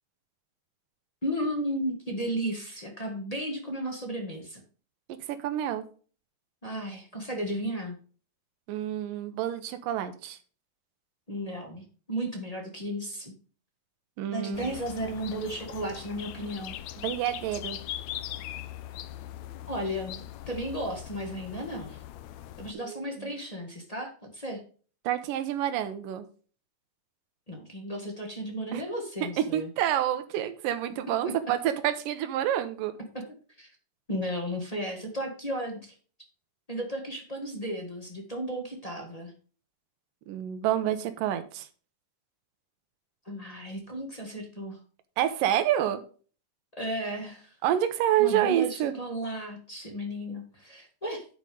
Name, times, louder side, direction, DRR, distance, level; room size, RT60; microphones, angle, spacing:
voice 1, 1.2-4.6 6.6-8.0 11.3-13.3 14.3-16.8 19.7-22.0 22.6-24.6 27.5-29.7 31.2-31.3 33.1-33.2 33.6-33.7 34.1-35.9 36.7-39.3 43.2-44.8 46.7-47.6 48.2-51.3, equal, 30° left, 0 dB, 0.7 m, -34 dB
voice 2, 5.4-5.8 8.7-10.4 14.2-14.7 17.0-17.8 22.7-23.3 25.0-26.3 28.7-28.8 29.4-32.9 40.3-41.7 45.2-46.0 47.6-48.9, right 11 dB, 90° right, 9 dB, 2.5 m, -28 dB
sound 1, 14.5-22.7, left 13 dB, 80° left, 1.6 m, -41 dB
10.5 x 4.8 x 5.3 m, 0.40 s
omnidirectional pair, 3.8 m